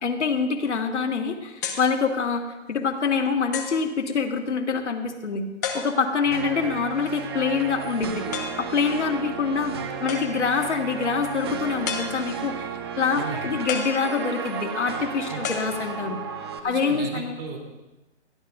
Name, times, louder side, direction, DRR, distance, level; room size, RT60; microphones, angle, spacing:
voice 1, 0.0-5.5 5.7-8.3 8.6-16.2 16.6-17.4, left 5 dB, 75° left, 3 dB, 2.0 m, -25 dB
sound 1, 1.6-2.0 2.7-2.8 3.5-3.9 5.6-6.3 8.3-8.7 10.1-10.6 11.8-12.5 13.7-14.5 15.4-16.3, left 6 dB, 15° left, 0.7 m, -33 dB
sound 2, 6.3-16.6, right 6 dB, 20° right, 0.8 m, -33 dB
voice 2, 13.1-13.5 15.3-15.4 16.6-17.6, right 4 dB, 45° right, 0 dB, 3.9 m, -35 dB
21.5 x 14.5 x 2.7 m, 1.1 s
hypercardioid pair, 165°, 35 cm